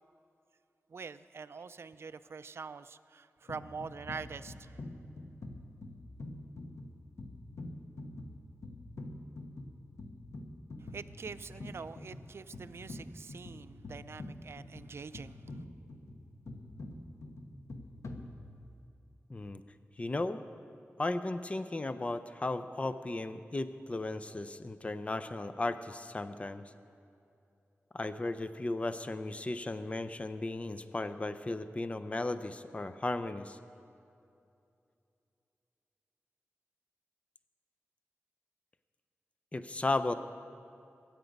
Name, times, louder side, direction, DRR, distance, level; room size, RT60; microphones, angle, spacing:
voice 1, 0.9-4.8 10.8-15.6, right 5 dB, 60° right, 12 dB, 0.4 m, -45 dB
sound 1, 3.5-18.9, left 2 dB, 75° left, 1.1 m, -46 dB
voice 2, 19.3-19.6 20.0-20.4 21.0-26.7 27.9-33.6 39.5-40.1, left 2 dB, 25° left, 11 dB, 0.5 m, -35 dB
21.5 x 8.9 x 5.3 m, 2.6 s
wide cardioid pair, 115°, 5 cm